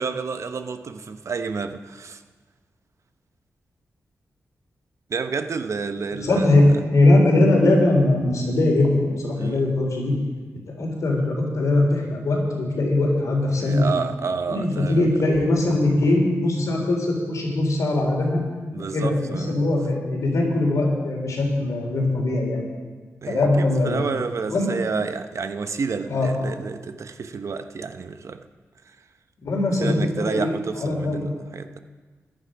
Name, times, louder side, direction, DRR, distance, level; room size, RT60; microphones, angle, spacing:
voice 1, 0.0-2.2 5.1-6.6 9.4-9.7 13.6-15.1 18.7-19.6 23.2-28.4 29.8-31.8, right 5 dB, 60° right, 0.8 m, -30 dB
voice 2, 6.1-6.6 6.9-10.1 10.7-13.9 14.5-18.4 18.8-22.7 23.3-24.0 24.5-24.7 26.1-26.3 29.4-31.2, left 2 dB, 75° left, 3.7 m, -21 dB
15.5 x 10.5 x 5.2 m
cardioid pair, 70°, 6 cm